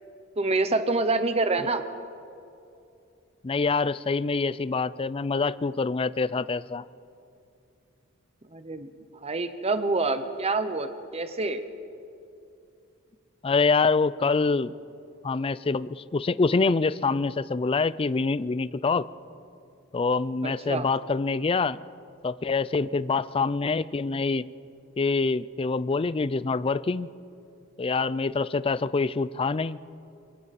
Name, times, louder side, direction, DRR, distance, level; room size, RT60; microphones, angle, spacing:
voice 1, 0.4-1.8 8.5-8.9 9.2-11.6 20.4-20.9, right 3 dB, 30° right, 9 dB, 0.8 m, -27 dB
voice 2, 3.4-6.8 13.4-14.7 15.2-19.1 19.9-21.8 22.2-24.4 25.0-27.1 27.8-29.8, left 4 dB, 25° left, 17 dB, 0.4 m, -25 dB
27.5 x 22.5 x 4.2 m, 2.6 s
head